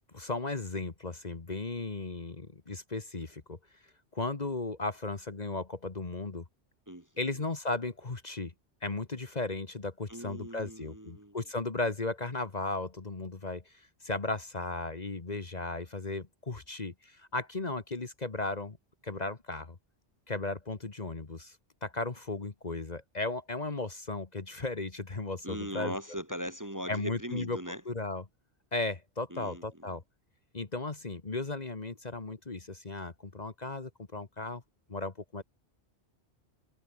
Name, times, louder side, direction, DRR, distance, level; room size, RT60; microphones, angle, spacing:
voice 1, 0.1-3.6 4.1-6.4 7.2-8.5 8.8-13.6 14.0-18.8 19.0-19.8 20.3-21.6 21.8-25.9 26.9-27.6 27.9-28.2 28.7-30.0 30.5-34.6 34.9-35.4, left 3 dB, 40° left, 1.6 m, -35 dB
voice 2, 6.9-7.5 10.1-11.4 25.4-27.8 29.3-29.9, equal, 15° right, 1.5 m, -40 dB
omnidirectional pair, 1.2 m